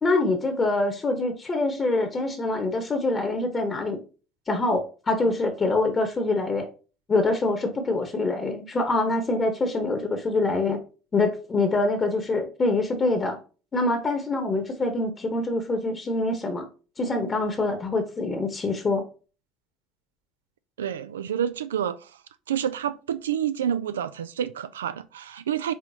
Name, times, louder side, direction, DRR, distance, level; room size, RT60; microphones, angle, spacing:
voice 1, 0.0-4.0 4.5-6.7 7.1-10.8 11.1-13.4 13.7-16.6 17.0-19.0, left 2 dB, 35° left, 1.1 m, -25 dB
voice 2, 20.8-22.1 22.5-25.7, right 9 dB, 90° right, 0.3 m, -28 dB
4.9 x 3.9 x 2.8 m
hypercardioid pair, 65°, 0 cm